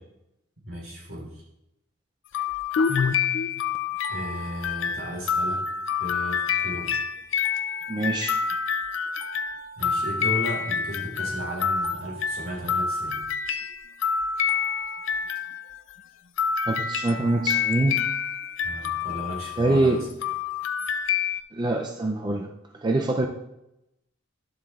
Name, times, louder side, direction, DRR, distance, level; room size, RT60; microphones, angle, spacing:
voice 1, 0.6-1.4 4.1-5.6 6.0-6.9 9.8-13.2 18.6-20.1, equal, 75° right, -3 dB, 3.4 m, -35 dB
sound 1, 2.3-15.9 16.4-21.4, left 6 dB, 65° left, 0.4 m, -27 dB
voice 2, 7.9-8.4 16.7-18.0 19.6-20.0 21.5-22.5 22.8-23.3, right 2 dB, 20° right, 2 dB, 0.4 m, -24 dB
11.0 x 7.5 x 2.4 m, 0.88 s
head